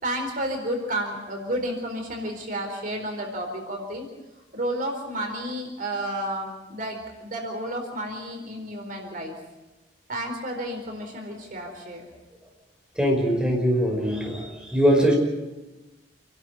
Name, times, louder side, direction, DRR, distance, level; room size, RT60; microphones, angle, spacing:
voice 1, 0.0-4.1 4.5-9.3 10.1-12.1, right 1 dB, 50° right, 2 dB, 4.2 m, -31 dB
voice 2, 13.0-15.1, equal, 5° right, -1 dB, 5.5 m, -22 dB
28.0 x 12.0 x 9.4 m, 1.1 s
head